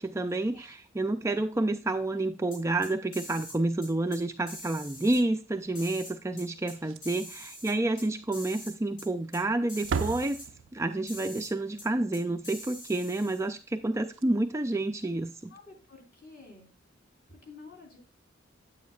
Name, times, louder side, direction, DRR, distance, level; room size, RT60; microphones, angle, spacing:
voice 1, 0.0-10.4 10.7-15.5, right 2 dB, 15° right, 7 dB, 0.4 m, -29 dB
sound 1, 2.5-3.6 3.8-4.2 4.5-5.2 5.7-6.7 7.0-8.0 8.3-8.7 9.0-9.1 9.3-9.4 9.7-10.5 11.1-11.5 11.8-11.9 12.1-13.4, equal, 75° left, 4.4 m, -44 dB
Slam, 6.7-7.3 7.6-7.8 8.2-8.3 9.1-9.5 9.7-11.0 13.7-13.8 14.0-14.2 15.8-15.9, right 5 dB, 80° right, 0.4 m, -36 dB
voice 2, 15.5-16.7 17.3-18.0, left 3 dB, 50° left, 0 dB, 3.5 m, -50 dB
9.4 x 8.4 x 2.3 m, 0.33 s
head